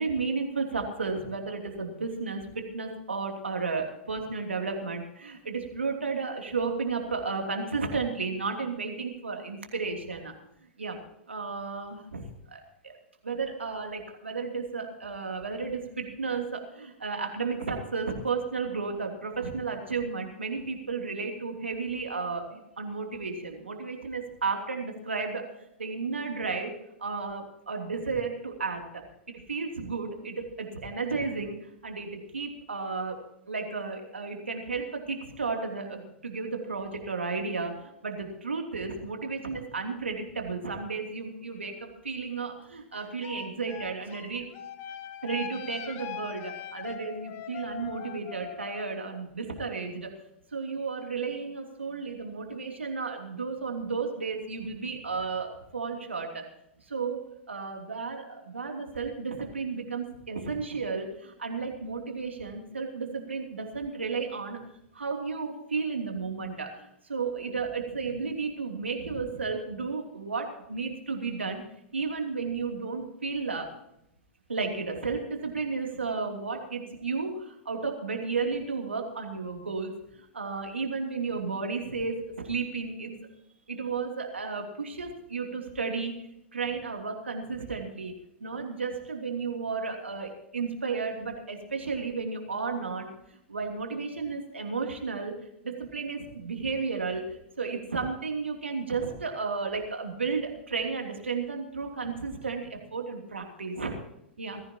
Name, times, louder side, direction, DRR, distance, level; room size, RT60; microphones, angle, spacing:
voice 1, 0.0-10.3 10.8-11.0 11.3-12.2 12.5-12.9 13.2-25.4 25.8-26.7 27.0-29.0 29.5-33.2 33.4-44.5 45.2-50.1 50.5-56.4 56.8-57.2 57.5-64.6 64.9-71.6 71.9-73.7 74.5-83.1 83.7-88.1 88.4-95.3 95.6-104.0 104.4-104.6, right 4 dB, 85° right, 3 dB, 3.0 m, -33 dB
Clarinetist at Josep Maria Ruera, 42.9-49.1, left 9 dB, 40° left, 1.6 m, -41 dB
20.5 x 15.0 x 3.0 m, 0.80 s
figure-of-eight pair, 100°, 6 cm